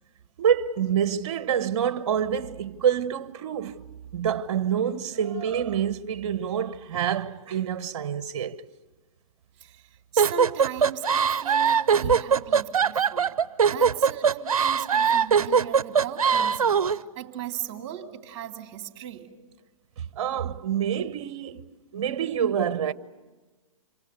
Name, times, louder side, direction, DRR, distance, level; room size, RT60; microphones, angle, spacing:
voice 1, 0.4-8.6 12.0-12.1 20.0-21.6 21.9-22.9, right 8 dB, 50° right, 1.1 m, -27 dB
voice 2, 9.6-13.4 13.7-19.3, right 11 dB, 30° right, 2.7 m, -38 dB
sound 1, 10.2-17.0, right 7 dB, 75° right, 0.8 m, -21 dB
27.5 x 24.0 x 8.1 m
hypercardioid pair, 135°, 18 cm